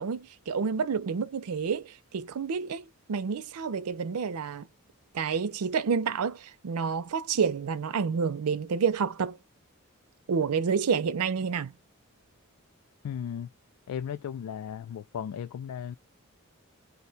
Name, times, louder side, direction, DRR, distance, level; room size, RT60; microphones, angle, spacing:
voice 1, 0.0-4.7 5.1-9.4 10.3-11.7, right 6 dB, 85° right, 0.5 m, -29 dB
voice 2, 13.0-13.5 13.9-16.0, left 8 dB, 90° left, 0.3 m, -36 dB
2.5 x 2.2 x 4.0 m
head